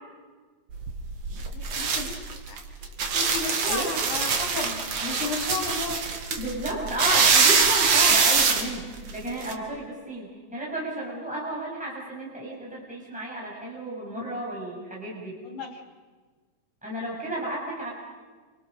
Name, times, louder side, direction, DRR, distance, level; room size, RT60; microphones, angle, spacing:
sound 1, 0.7-9.5, right 5 dB, 60° right, 3.1 m, -24 dB
voice 1, 1.5-2.6 3.1-6.4 15.4-15.8, left 4 dB, 80° left, 3 dB, 4.8 m, -34 dB
voice 2, 6.4-8.8 9.1-15.4 16.8-17.9, right 1 dB, ahead, -4 dB, 6.9 m, -32 dB
28.5 x 27.5 x 6.7 m, 1.4 s
omnidirectional pair, 3.3 m